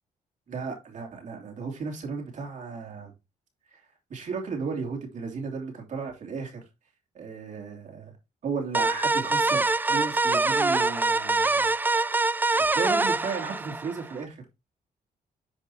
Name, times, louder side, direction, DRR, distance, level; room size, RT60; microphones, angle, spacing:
voice 1, 0.5-3.1 3.7-3.8 4.1-6.6 7.1-8.2 8.4-11.7 12.6-14.4, right 5 dB, 55° right, 2.9 m, -34 dB
sound 1, 8.7-14.2, right 3 dB, 15° right, 0.4 m, -24 dB
10.0 x 5.3 x 2.8 m
cardioid pair, 95°, 15 cm